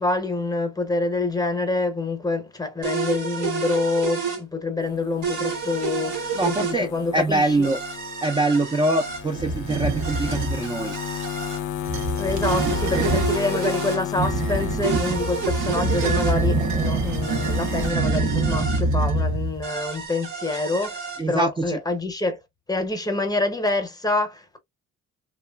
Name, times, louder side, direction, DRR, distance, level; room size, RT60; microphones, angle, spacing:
voice 1, 0.0-7.7 12.2-22.4 22.7-24.6, left 3 dB, 10° left, 0.8 m, -26 dB
sound 1, 2.8-4.4 5.2-6.8 7.6-9.2 10.0-11.6 12.4-14.0 14.8-16.4 17.2-18.8 19.6-21.2, right 6 dB, 85° right, 1.1 m, -30 dB
sound 2, 4.8-17.9, left 10 dB, 80° left, 0.5 m, -34 dB
voice 2, 6.3-7.8 8.2-11.0 21.2-21.8, right 2 dB, 15° right, 0.4 m, -24 dB
sound 3, 9.3-10.6 11.7-13.4 14.1-19.7, right 2 dB, 65° right, 0.8 m, -25 dB
2.9 x 2.2 x 2.2 m
cardioid pair, 90°, 30 cm